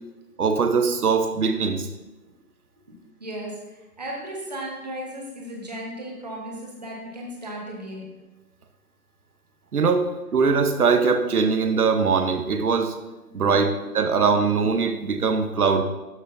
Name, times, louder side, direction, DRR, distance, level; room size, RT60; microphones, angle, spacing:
voice 1, 0.4-1.9 9.7-13.0 13.3-15.8, right 5 dB, 65° right, 6 dB, 0.9 m, -21 dB
voice 2, 2.8-8.1 13.3-13.4 13.7-13.9, right 1 dB, 25° right, -2 dB, 1.4 m, -36 dB
12.5 x 6.1 x 2.7 m, 1.1 s
hypercardioid pair, 175°, 47 cm